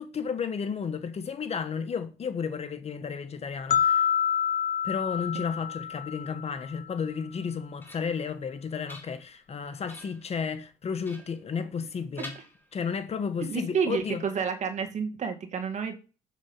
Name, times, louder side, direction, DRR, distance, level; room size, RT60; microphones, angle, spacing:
voice 1, 0.0-4.1 4.8-12.3 12.7-14.2, left 6 dB, 40° left, 1.5 m, -33 dB
sound 1, 3.7-6.8, left 9 dB, 55° left, 0.8 m, -27 dB
sound 2, 7.3-8.3 8.7-9.5 9.9-10.3 11.0-11.9 12.2-13.1, left 1 dB, 10° left, 3.4 m, -48 dB
voice 2, 13.5-15.9, right 6 dB, 45° right, 2.4 m, -30 dB
7.6 x 7.4 x 7.3 m
cardioid pair, 110°, 17 cm